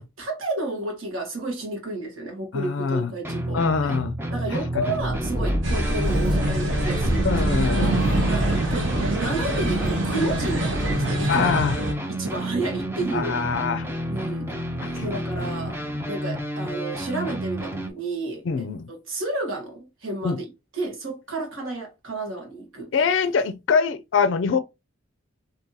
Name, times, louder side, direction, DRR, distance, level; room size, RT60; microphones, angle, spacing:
voice 1, 0.0-3.9 4.3-7.4 7.7-8.0 8.3-11.5 12.1-13.4 14.1-14.5 15.0-15.8 16.1-18.4 18.9-20.4 20.7-23.1, right 2 dB, 80° right, 1.2 m, -31 dB
voice 2, 2.5-3.1 3.5-4.1 7.2-8.1 11.3-11.8 13.1-13.9 15.0-15.1 18.5-18.9 20.2-20.4 22.9-24.6, left 5 dB, 65° left, 0.4 m, -23 dB
sound 1, 3.2-17.9, equal, 10° right, 0.5 m, -30 dB
sound 2, 5.0-10.9, right 1 dB, 45° right, 1.3 m, -28 dB
sound 3, 5.6-11.9, right 2 dB, 60° right, 0.9 m, -26 dB
2.7 x 2.6 x 3.8 m
head